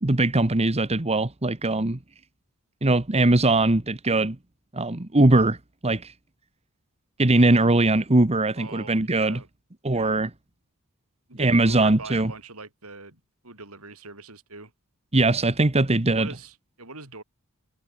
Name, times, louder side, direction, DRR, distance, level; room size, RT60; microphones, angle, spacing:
voice 1, 0.0-2.0 2.8-4.4 4.7-5.6 5.8-6.1 7.2-9.4 9.8-10.3 11.4-12.3 15.1-16.3, right 2 dB, 30° right, 1.3 m, -21 dB
voice 2, 8.6-9.5 9.9-10.1 11.3-14.7 16.1-17.2, right 3 dB, 70° right, 6.5 m, -42 dB
head